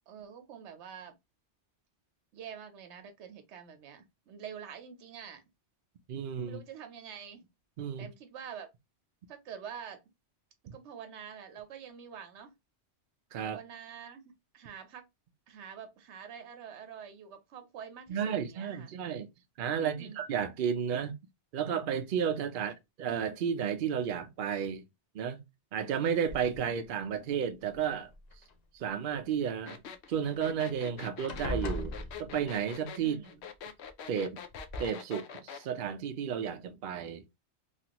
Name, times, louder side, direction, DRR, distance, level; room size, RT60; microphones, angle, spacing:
voice 1, 0.1-1.1 2.3-5.4 6.4-7.5 8.0-8.7 9.3-10.0 10.7-12.5 13.4-15.1 15.5-18.9 19.7-20.2 22.6-22.7 33.0-33.4, right 8 dB, 80° right, 1.0 m, -46 dB
voice 2, 6.1-6.6 7.8-8.1 13.3-13.6 18.1-19.3 19.6-21.1 21.5-24.8 25.1-25.4 25.7-28.1 28.7-29.8 30.1-33.2 34.1-34.4 34.8-37.2, right 8 dB, 60° right, 0.7 m, -32 dB
sound 1, 26.3-26.8 27.7-28.5 30.3-30.4 30.7-30.9 31.3-32.7 33.9-34.0 34.5-34.9, left 2 dB, 50° left, 0.5 m, -39 dB
sound 2, 29.7-35.7, left 7 dB, 75° left, 0.9 m, -45 dB
3.2 x 2.5 x 2.8 m
omnidirectional pair, 1.1 m